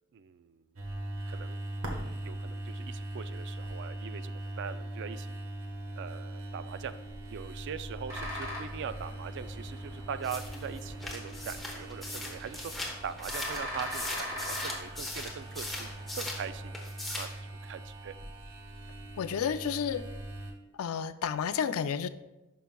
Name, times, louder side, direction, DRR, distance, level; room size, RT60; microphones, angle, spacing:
voice 1, 0.1-0.6 1.3-1.6 2.2-5.4 6.0-6.9 7.3-12.7 13.0-16.8 17.1-18.2, right 7 dB, 55° right, 13 dB, 0.3 m, -41 dB
sound 1, 0.8-20.5, right 1 dB, 90° right, 1.3 m, -41 dB
sound 2, 8.1-16.7, left 1 dB, 15° right, 2.3 m, -42 dB
sound 3, 10.2-16.4 16.7-17.4, left 1 dB, ahead, 1.1 m, -39 dB
voice 2, 19.2-20.0 20.8-22.1, left 7 dB, 80° left, 13 dB, 0.4 m, -31 dB
11.0 x 5.6 x 2.2 m, 0.99 s
head